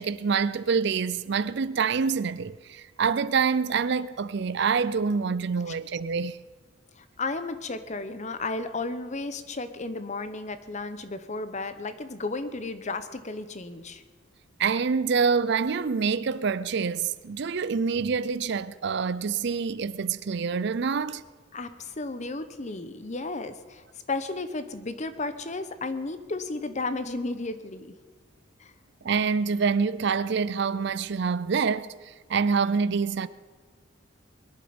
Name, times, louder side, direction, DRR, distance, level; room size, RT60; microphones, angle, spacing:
voice 1, 0.0-6.4 14.6-21.3 29.0-33.3, right 5 dB, 60° right, 0.5 m, -26 dB
voice 2, 7.0-14.0 21.5-27.9 28.6-28.7, left 3 dB, 35° left, 0.9 m, -33 dB
21.5 x 11.0 x 5.2 m
head